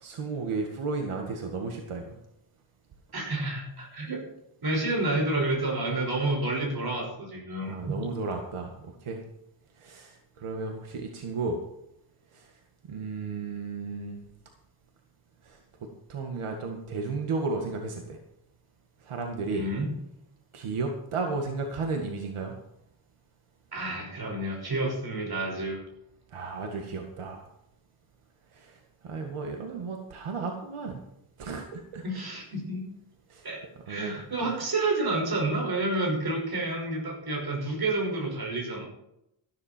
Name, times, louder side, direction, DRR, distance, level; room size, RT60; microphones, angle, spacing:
voice 1, 0.0-2.0 7.7-9.2 9.8-10.1 10.4-11.6 12.9-14.2 16.1-18.2 19.1-19.6 20.5-22.5 26.3-27.4 29.0-31.0 31.4-32.0 33.3-33.4 33.9-34.1, right 4 dB, 90° right, 2 dB, 2.0 m, -33 dB
voice 2, 3.1-4.2 4.6-8.0 19.5-19.9 23.7-25.8 32.0-32.9 33.4-38.9, right 2 dB, 50° right, 0 dB, 5.8 m, -29 dB
13.5 x 12.5 x 4.5 m, 0.81 s
wide cardioid pair, 150°, 49 cm